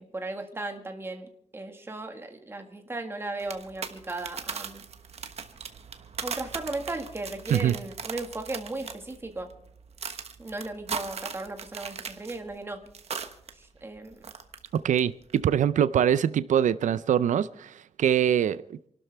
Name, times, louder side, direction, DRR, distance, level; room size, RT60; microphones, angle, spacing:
voice 1, 0.0-4.8 6.2-9.5 10.4-12.8 13.6-14.2, right 2 dB, 20° right, 4 dB, 1.8 m, -36 dB
sound 1, 3.4-13.5 13.8-15.0 15.3-15.5, right 6 dB, 60° right, 1.3 m, -39 dB
voice 2, 14.8-18.8, right 9 dB, 90° right, 15 dB, 0.5 m, -24 dB
28.0 x 12.5 x 3.4 m, 0.73 s
wide cardioid pair, 165°, 12 cm